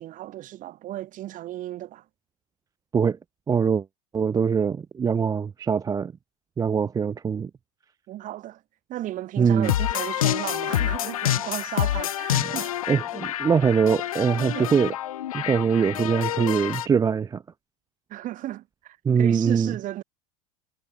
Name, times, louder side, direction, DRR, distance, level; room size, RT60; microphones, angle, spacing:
voice 1, 0.0-2.0 8.1-8.6 8.9-12.7 14.5-14.7 15.4-15.5 18.1-20.0, right 14 dB, 50° right, 4.6 m, -34 dB
voice 2, 3.5-3.8 4.1-6.1 6.6-7.5 9.4-9.7 12.3-12.5 12.9-14.9 15.3-17.4 19.0-19.7, right 6 dB, 20° right, 0.5 m, -23 dB
sound 1, 9.6-16.9, left 12 dB, 85° left, 0.6 m, -27 dB
hypercardioid pair, 85°, 18 cm